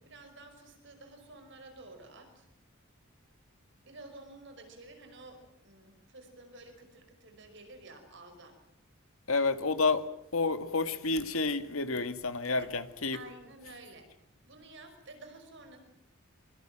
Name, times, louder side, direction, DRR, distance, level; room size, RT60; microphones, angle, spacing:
voice 1, 0.0-2.5 3.8-8.6 12.5-12.7 13.1-14.1 14.4-15.8, right 2 dB, 60° right, 7 dB, 5.4 m, -51 dB
voice 2, 9.3-10.1 10.3-13.2, left 3 dB, 80° left, 9 dB, 2.0 m, -29 dB
25.0 x 24.5 x 7.7 m, 0.73 s
head